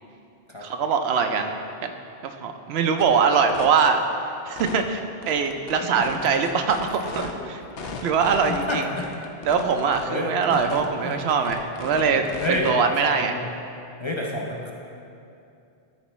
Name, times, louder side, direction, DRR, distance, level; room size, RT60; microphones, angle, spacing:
voice 1, 0.6-1.6 1.8-1.9 2.2-4.0 4.4-7.6 8.0-8.9 9.4-13.3, right 5 dB, 80° right, 6 dB, 0.8 m, -22 dB
sound 1, 3.0-3.1 3.3-3.7 4.6-4.8 5.2-7.3 7.8-8.6 9.0-10.0 10.4-10.9 11.1-12.7, left 5 dB, 70° left, 0.8 m, -37 dB
voice 2, 7.3-8.1 8.7-9.1 10.1-10.6 11.0-11.2 12.0-13.5 14.0-14.7, left 1 dB, 35° left, -2 dB, 0.5 m, -30 dB
12.5 x 4.3 x 3.0 m, 2.6 s
omnidirectional pair, 1.1 m